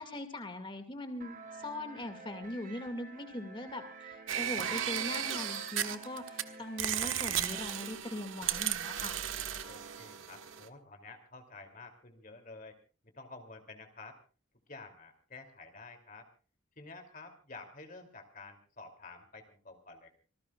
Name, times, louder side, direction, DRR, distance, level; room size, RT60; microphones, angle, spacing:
voice 1, 0.0-9.2, left 1 dB, 25° left, 7 dB, 2.2 m, -41 dB
sound 1, 1.2-7.9, right 3 dB, 40° right, 1.6 m, -50 dB
sound 2, 4.3-6.4 6.8-10.7, right 10 dB, 75° right, 1.4 m, -35 dB
voice 2, 9.7-12.8 13.1-14.2 14.7-16.3 16.8-20.1, left 3 dB, 40° left, 5 dB, 2.9 m, -50 dB
26.0 x 19.5 x 2.4 m, 0.36 s
head